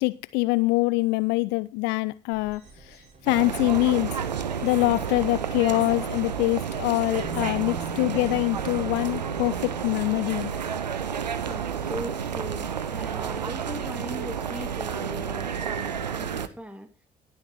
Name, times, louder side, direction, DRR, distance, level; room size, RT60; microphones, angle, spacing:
voice 1, 0.0-4.1 4.6-10.5, left 23 dB, 55° left, 0.4 m, -24 dB
sound 1, 2.3-12.4, right 3 dB, 35° right, 5.6 m, -52 dB
sound 2, 3.3-16.5, right 7 dB, 85° right, 0.6 m, -31 dB
Bass guitar, 7.2-13.3, equal, 20° left, 4.5 m, -44 dB
voice 2, 11.4-16.9, equal, 5° right, 2.3 m, -39 dB
18.5 x 7.2 x 3.0 m
figure-of-eight pair, 50°, 21 cm